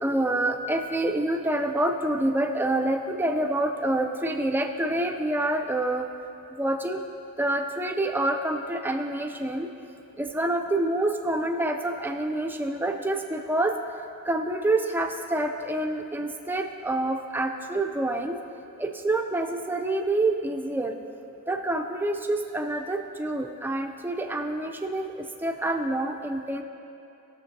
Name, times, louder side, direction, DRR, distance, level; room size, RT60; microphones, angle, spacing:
voice 1, 0.0-6.1 6.6-7.0 7.4-9.7 10.2-13.8 14.3-18.4 18.8-20.9 21.5-25.1 25.4-26.6, right 1 dB, 10° right, 5 dB, 0.3 m, -27 dB
16.0 x 6.5 x 2.7 m, 2.7 s
head